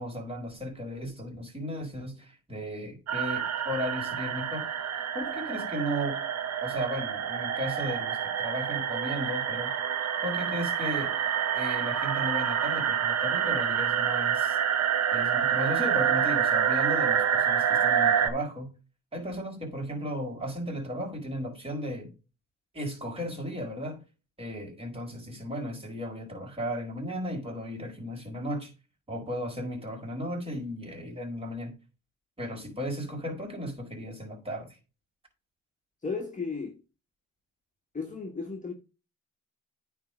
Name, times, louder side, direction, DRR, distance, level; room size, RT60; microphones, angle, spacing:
voice 1, 0.0-4.7 5.1-6.2 6.6-9.7 10.2-11.2 11.5-14.6 15.1-18.7 19.1-22.1 22.7-24.0 24.4-28.7 29.1-31.8 32.4-34.8, equal, 20° right, 4.4 m, -35 dB
sound 1, 3.1-18.3, right 8 dB, 60° right, 1.3 m, -27 dB
voice 2, 36.0-36.8 37.9-38.7, left 4 dB, 25° left, 1.5 m, -34 dB
9.3 x 3.7 x 6.2 m
cardioid pair, 90°, 30 cm